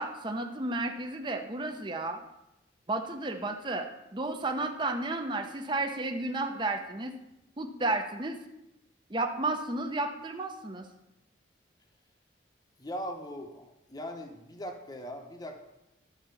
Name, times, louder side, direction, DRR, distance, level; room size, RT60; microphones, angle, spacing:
voice 1, 0.0-2.2 2.9-7.1 7.6-8.4 9.1-10.9, right 2 dB, 25° right, 4 dB, 0.6 m, -32 dB
voice 2, 12.8-15.6, equal, 20° left, 4 dB, 0.8 m, -40 dB
11.5 x 4.3 x 6.8 m, 0.90 s
head